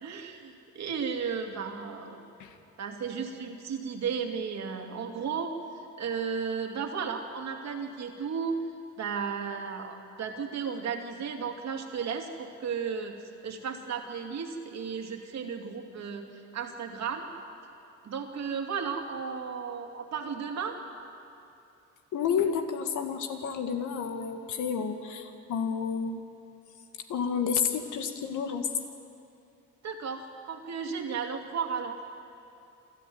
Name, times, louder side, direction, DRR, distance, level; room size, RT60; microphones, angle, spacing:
voice 1, 0.0-2.2 2.8-5.5 6.0-8.6 9.0-13.1 13.4-16.3 16.5-17.3 18.0-20.8 29.8-32.0, right 6 dB, 60° right, 3 dB, 2.6 m, -34 dB
voice 2, 22.1-26.2 27.1-28.7, left 6 dB, 80° left, 6 dB, 1.8 m, -30 dB
27.0 x 12.5 x 9.4 m, 2.6 s
cardioid pair, 90°, 30 cm